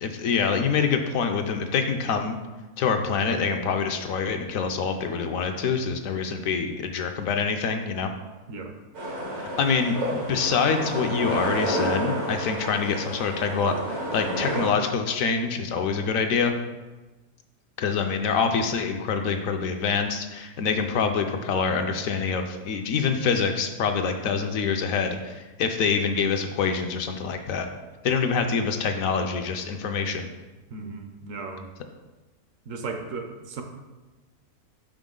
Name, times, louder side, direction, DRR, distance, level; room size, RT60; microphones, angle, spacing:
voice 1, 0.0-2.4 2.8-8.1 9.4-16.5 17.8-27.7 28.0-30.3, left 5 dB, 70° left, 5 dB, 0.9 m, -26 dB
sound 1, 8.9-14.7, right 1 dB, 85° right, 2.0 m, -30 dB
voice 2, 30.7-31.7 32.7-33.6, right 4 dB, 65° right, 5 dB, 1.0 m, -36 dB
5.9 x 5.1 x 3.7 m, 1.2 s
omnidirectional pair, 1.5 m